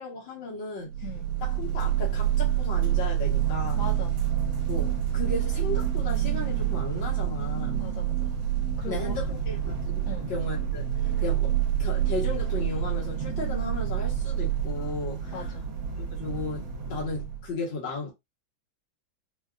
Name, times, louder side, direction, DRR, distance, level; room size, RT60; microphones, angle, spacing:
voice 1, 0.0-0.9 1.4-3.8 4.7-7.8 8.8-10.9 11.2-15.5 16.1-18.1, left 3 dB, 70° left, 2.0 m, -35 dB
sound 1, 0.9-17.5, right 10 dB, 70° right, 1.5 m, -28 dB
voice 2, 3.7-4.1 7.8-8.3 8.8-9.2 10.0-10.3 15.3-15.6, left 4 dB, 45° left, 1.3 m, -39 dB
4.1 x 2.3 x 2.3 m
omnidirectional pair, 2.2 m